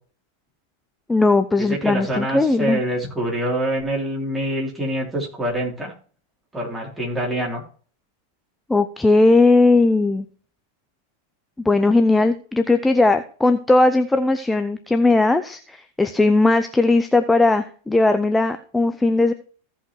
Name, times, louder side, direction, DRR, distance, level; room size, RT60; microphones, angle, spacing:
voice 1, 1.1-2.8 8.7-10.3 11.6-19.3, left 2 dB, 10° left, 8 dB, 0.6 m, -18 dB
voice 2, 1.7-5.9 6.5-7.6, right 1 dB, 10° right, -3 dB, 3.5 m, -25 dB
16.0 x 5.4 x 3.2 m, 0.43 s
figure-of-eight pair, 90°, 0 cm